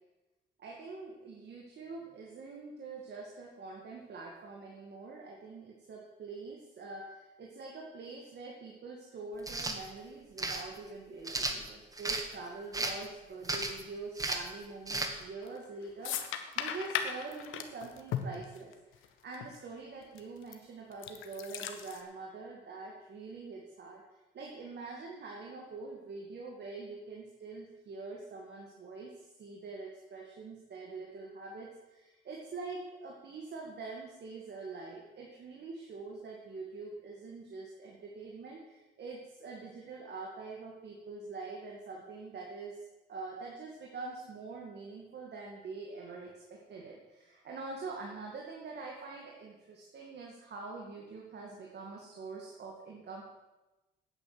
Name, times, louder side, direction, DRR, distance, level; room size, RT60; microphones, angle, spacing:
voice 1, 0.6-53.2, right 3 dB, 60° right, -1 dB, 2.2 m, -45 dB
sound 1, 9.4-9.8 10.4-10.6 11.2-12.2 12.7-13.0 13.4-13.8 14.2-14.5 14.9-15.1, right 2 dB, 15° right, 1.6 m, -34 dB
sound 2, 15.4-15.7 16.0-19.1 19.3-19.5 20.2-20.5 20.9-22.0, left 9 dB, 90° left, 1.1 m, -36 dB
9.0 x 8.6 x 7.8 m, 1.1 s
cardioid pair, 90°, 20 cm